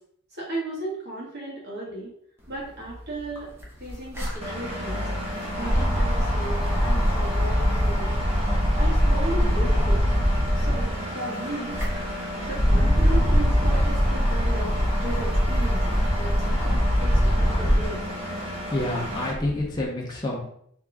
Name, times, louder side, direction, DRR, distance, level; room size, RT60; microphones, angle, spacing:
voice 1, 0.3-2.1 2.5-3.5 3.8-5.1 5.6-8.2 8.8-10.1 10.5-11.8 12.5-14.7 15.0-18.0, right 2 dB, 45° right, -5 dB, 1.8 m, -35 dB
sound 1, 2.8-2.9 3.2-11.0 11.5-18.0 18.5-19.6, equal, 10° right, 0.9 m, -23 dB
Engine, 4.4-19.3, equal, 25° right, 1.2 m, -34 dB
voice 2, 18.4-20.5, left 1 dB, 20° left, -3 dB, 0.6 m, -28 dB
3.6 x 3.5 x 3.5 m, 0.68 s
head